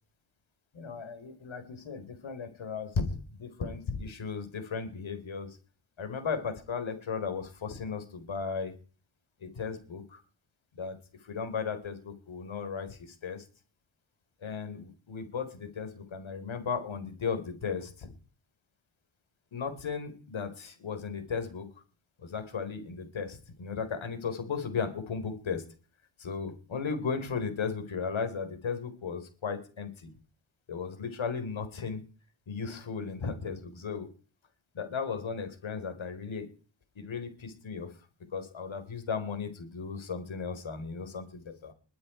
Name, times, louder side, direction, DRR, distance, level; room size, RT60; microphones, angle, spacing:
voice 1, 0.7-5.6 6.0-8.7 9.4-10.2 10.7-13.4 14.4-18.1 19.5-21.7 22.2-25.6 26.2-30.1 30.7-32.0 32.5-34.1 34.7-36.4 37.0-37.9 38.3-41.7, left 5 dB, 70° left, 8 dB, 4.2 m, -36 dB
22.0 x 9.5 x 4.5 m, 0.38 s
cardioid pair, 80°, 49 cm